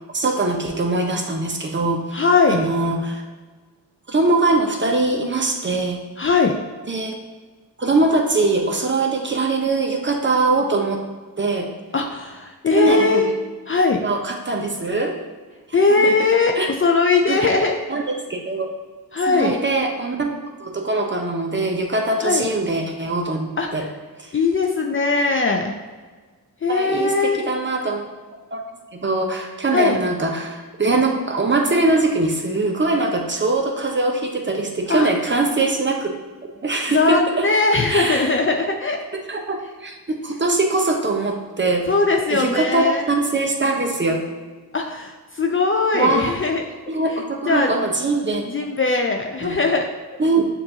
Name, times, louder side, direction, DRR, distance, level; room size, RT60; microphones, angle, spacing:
voice 1, 0.1-2.0 2.5-3.2 4.1-6.0 6.9-7.1 7.8-11.0 11.4-11.7 12.7-13.2 14.0-15.1 16.0-16.1 16.6-16.7 17.3-17.4 17.9-18.7 19.3-23.9 26.7-28.0 28.5-28.6 28.9-36.1 36.6-37.5 37.9-38.3 39.3-41.9 42.3-44.2 45.9-46.3 46.9-48.5 49.4-49.6 50.2-50.4, right 2 dB, 25° right, 2 dB, 0.8 m, -22 dB
voice 2, 2.1-2.6 6.2-6.5 11.9-13.3 13.7-14.0 15.7-17.8 19.1-19.5 22.2-22.5 23.6-23.8 24.3-25.7 26.6-27.4 29.7-30.0 34.9-35.1 36.9-39.0 41.9-43.0 44.7-46.8 47.5-47.7 48.5-49.9, left 3 dB, 30° left, 3 dB, 0.5 m, -20 dB
6.6 x 2.6 x 2.8 m, 1.4 s
supercardioid pair, 45°, 43 cm